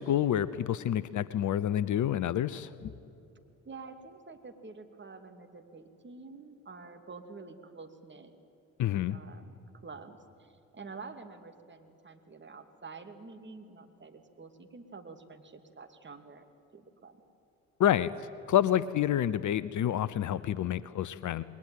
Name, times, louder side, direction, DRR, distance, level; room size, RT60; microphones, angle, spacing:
voice 1, 0.0-2.9 8.8-9.2 17.8-18.1 18.5-21.4, left 11 dB, 45° left, 17 dB, 0.8 m, -28 dB
voice 2, 3.6-8.3 9.1-9.5 9.8-16.5 16.7-17.2, right 4 dB, 25° right, 5 dB, 2.7 m, -48 dB
28.5 x 21.5 x 9.2 m, 2.7 s
figure-of-eight pair, 45°, 41 cm